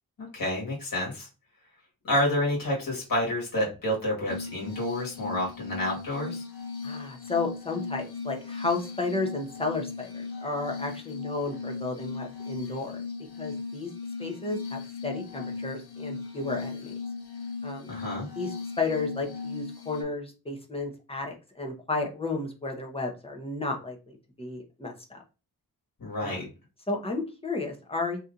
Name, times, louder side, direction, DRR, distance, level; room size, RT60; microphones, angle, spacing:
voice 1, 0.2-1.3 2.0-6.5 17.9-18.3 26.0-26.5, left 1 dB, 60° left, -3 dB, 1.4 m, -29 dB
Glass, 4.3-20.0, left 4 dB, 80° left, 0.8 m, -37 dB
voice 2, 6.8-13.0 13.4-13.9 14.2-16.9 17.6-17.9 18.4-18.5 18.8-25.2 26.2-26.5 26.9-28.2, left 3 dB, 15° left, 1 dB, 0.7 m, -33 dB
2.8 x 2.5 x 3.7 m, 0.31 s
wide cardioid pair, 125°, 38 cm